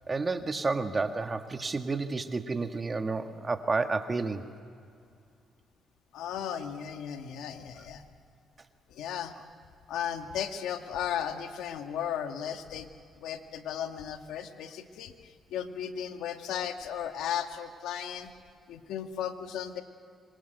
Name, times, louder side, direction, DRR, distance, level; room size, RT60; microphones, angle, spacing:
voice 1, 0.1-4.5, right 3 dB, 30° right, 6 dB, 1.6 m, -30 dB
voice 2, 6.1-8.0 8.9-9.3 9.9-12.9 13.2-18.3 18.7-19.8, left 9 dB, 85° left, 6 dB, 1.9 m, -35 dB
26.5 x 25.0 x 8.0 m, 2.3 s
cardioid pair, 90°, 0 cm